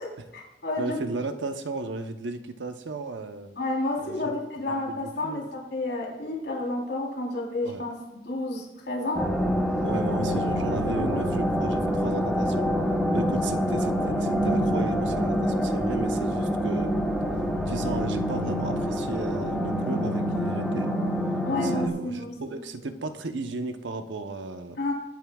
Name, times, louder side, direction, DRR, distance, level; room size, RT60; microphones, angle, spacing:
voice 1, 0.0-1.0 3.6-9.3 10.3-10.4 10.8-11.2 19.9-20.0 21.4-22.6 24.8-24.9, left 2 dB, 70° left, -3 dB, 3.6 m, -31 dB
voice 2, 0.8-3.5 4.0-4.3 4.9-5.4 7.6-7.8 9.8-12.7 13.1-16.9 17.6-20.9 21.6-24.9, right 2 dB, 85° right, 7 dB, 0.9 m, -35 dB
sound 1, 9.2-21.9, equal, ahead, 1.1 m, -26 dB
21.0 x 9.5 x 2.4 m, 0.93 s
head